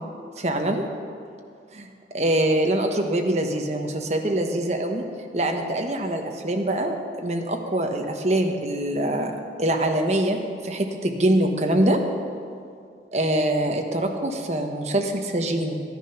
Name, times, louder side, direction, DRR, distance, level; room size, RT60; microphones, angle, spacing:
voice 1, 0.4-0.8 1.7-5.0 5.3-9.3 9.6-12.0 13.1-15.8, right 1 dB, 40° right, 3 dB, 1.1 m, -24 dB
13.5 x 10.0 x 5.8 m, 2.3 s
head